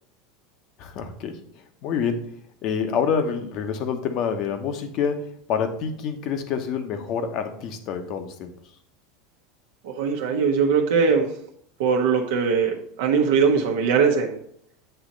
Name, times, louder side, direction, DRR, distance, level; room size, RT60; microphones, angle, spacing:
voice 1, 0.8-2.3 2.6-8.5, left 6 dB, 50° left, 7 dB, 1.0 m, -27 dB
voice 2, 9.8-11.3 11.8-14.4, right 5 dB, 75° right, 2 dB, 0.9 m, -21 dB
7.9 x 3.0 x 5.2 m, 0.66 s
supercardioid pair, 115°, 0 cm